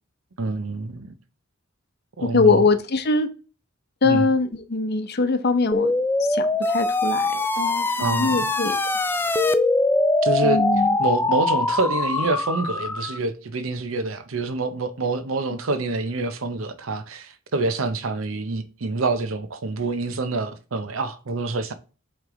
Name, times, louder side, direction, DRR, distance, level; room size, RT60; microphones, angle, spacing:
voice 1, 0.4-1.1 2.2-2.6 4.0-4.3 8.0-8.5 10.2-10.6 11.0-21.7, right 3 dB, 85° right, 0.8 m, -26 dB
voice 2, 2.2-3.3 4.0-5.9 6.2-8.8 10.4-11.0, left 3 dB, 55° left, 0.7 m, -22 dB
sound 1, 5.7-13.2, left 2 dB, 10° left, 0.3 m, -22 dB
7.9 x 3.2 x 3.8 m
head